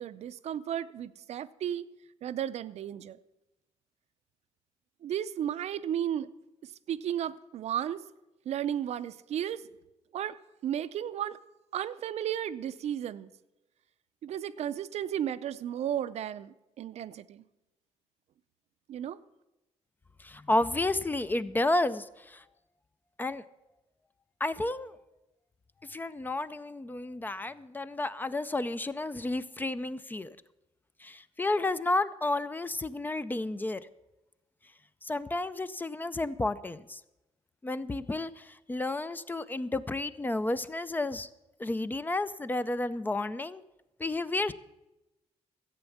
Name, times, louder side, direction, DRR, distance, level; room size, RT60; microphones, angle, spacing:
voice 1, 0.0-1.8 2.2-3.2 5.0-6.3 6.9-8.0 8.5-9.6 10.1-10.4 10.6-11.4 11.7-13.3 14.2-17.4 18.9-19.2, right 10 dB, 65° right, 13 dB, 0.5 m, -34 dB
voice 2, 20.2-22.4 23.2-23.4 24.4-24.9 25.9-30.4 31.0-33.9 35.0-37.0 37.6-41.3 41.6-43.6 44.0-44.5, left 2 dB, 15° left, 14 dB, 0.4 m, -31 dB
14.0 x 8.1 x 7.1 m, 0.97 s
cardioid pair, 135°, 12 cm